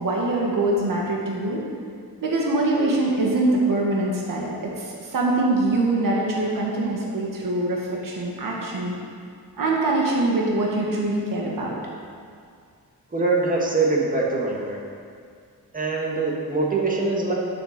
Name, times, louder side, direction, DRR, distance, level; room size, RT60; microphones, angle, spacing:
voice 1, 0.0-1.6 2.2-8.9 9.6-11.8, right 2 dB, 70° right, -3 dB, 1.8 m, -23 dB
voice 2, 13.1-14.8 15.7-17.3, right 3 dB, 25° right, -2 dB, 1.7 m, -23 dB
8.9 x 7.9 x 6.5 m, 2.2 s
wide cardioid pair, 145°, 35 cm